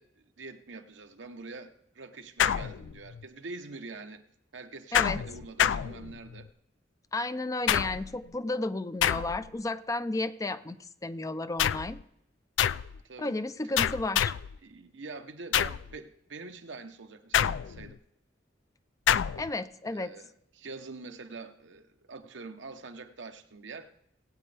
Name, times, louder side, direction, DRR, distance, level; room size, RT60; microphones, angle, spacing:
voice 1, 0.0-4.2 4.5-6.5 13.0-13.4 13.6-13.7 14.6-18.0 19.8-23.9, right 3 dB, 80° right, 0.9 m, -45 dB
sound 1, 2.4-3.2 4.9-6.5 7.7-8.2 9.0-9.6 11.6-12.0 12.6-13.0 13.8-14.6 15.5-15.9 17.3-18.0 19.1-19.5, left 9 dB, 80° left, 0.3 m, -27 dB
voice 2, 7.1-12.0 13.2-14.3 19.3-20.1, left 2 dB, 20° left, 0.4 m, -33 dB
20.0 x 8.7 x 3.4 m
head